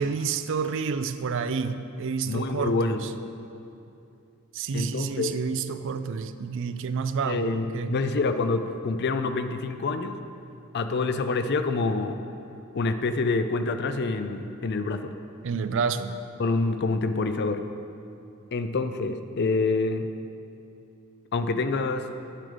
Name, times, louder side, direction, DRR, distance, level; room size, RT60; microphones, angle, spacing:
voice 1, 0.0-3.1 4.5-8.0 15.4-16.2, right 5 dB, 60° right, 11 dB, 0.4 m, -29 dB
voice 2, 2.3-3.0 4.7-5.4 7.3-10.2 10.7-12.2 12.7-15.1 16.4-17.6 18.5-20.1 21.3-22.1, left 3 dB, 50° left, 9 dB, 0.5 m, -27 dB
10.0 x 7.5 x 5.0 m, 2.6 s
head